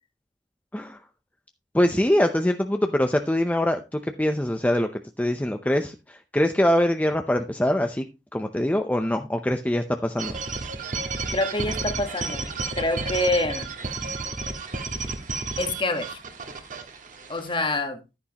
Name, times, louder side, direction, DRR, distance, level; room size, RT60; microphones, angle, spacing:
voice 1, 1.7-8.0 8.3-10.3 14.0-14.1, left 1 dB, 10° left, 0.6 m, -23 dB
sound 1, 10.2-17.5, right 3 dB, 50° right, 1.6 m, -32 dB
voice 2, 11.3-13.7 15.6-16.2 17.3-18.0, left 2 dB, 30° left, 1.4 m, -26 dB
11.0 x 9.9 x 2.9 m
head